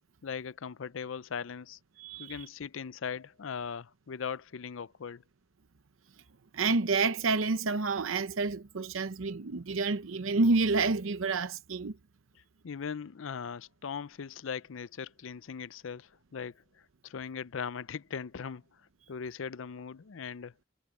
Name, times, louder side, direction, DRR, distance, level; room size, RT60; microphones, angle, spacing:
voice 1, 0.2-1.8 2.2-5.2 12.6-16.6 17.0-18.6 19.1-20.5, left 6 dB, 70° left, 0.5 m, -39 dB
voice 2, 2.0-2.5 6.5-12.0, right 3 dB, 75° right, 0.7 m, -29 dB
head